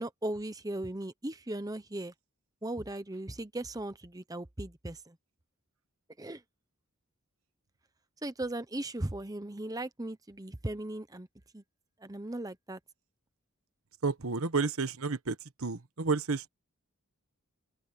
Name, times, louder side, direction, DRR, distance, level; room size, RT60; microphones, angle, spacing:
voice 1, 0.0-2.1 2.6-5.2 6.2-6.4 8.2-11.3 11.5-11.6 12.0-12.8, right 1 dB, 15° right, 0.8 m, -37 dB
voice 2, 14.0-16.5, right 4 dB, 75° right, 1.2 m, -31 dB
open air
head